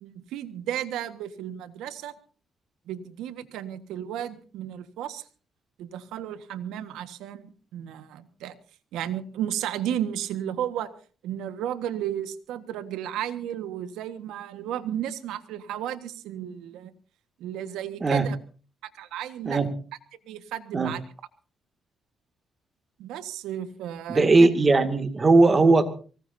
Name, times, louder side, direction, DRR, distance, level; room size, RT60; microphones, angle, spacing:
voice 1, 0.0-2.1 2.9-5.2 5.8-8.6 8.9-10.9 11.2-16.9 17.4-18.4 18.8-19.6 20.3-21.0 23.0-24.3, right 10 dB, 90° right, 11 dB, 1.4 m, -33 dB
voice 2, 24.1-25.9, right 3 dB, 30° right, 8 dB, 2.2 m, -19 dB
24.5 x 18.5 x 2.7 m, 0.39 s
cardioid pair, 90°, 0 cm